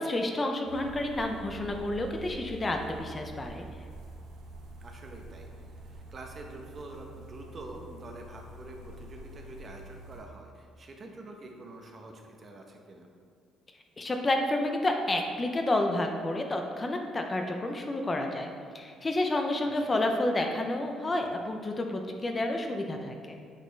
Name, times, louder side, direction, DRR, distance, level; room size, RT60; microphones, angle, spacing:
voice 1, 0.0-3.7 14.0-18.5 18.7-23.3, left 1 dB, 25° left, 4 dB, 0.6 m, -30 dB
sound 1, 0.6-10.2, right 3 dB, 85° right, 1.0 m, -46 dB
voice 2, 4.8-5.5 5.9-13.1 19.6-20.0, right 2 dB, 40° right, 2 dB, 0.9 m, -46 dB
8.1 x 4.2 x 3.3 m, 2.3 s
cardioid pair, 105°, 0 cm